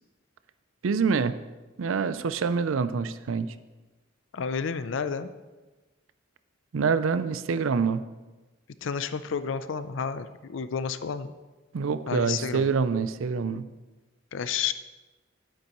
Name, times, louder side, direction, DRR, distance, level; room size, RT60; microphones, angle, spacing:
voice 1, 0.8-1.4 1.8-3.5 6.7-8.0 11.7-13.7, right 5 dB, 85° right, 13 dB, 0.4 m, -26 dB
voice 2, 4.3-5.3 8.8-11.3 12.1-12.7 14.3-14.7, left 6 dB, 70° left, 12 dB, 0.5 m, -31 dB
9.7 x 9.0 x 3.0 m, 1.2 s
head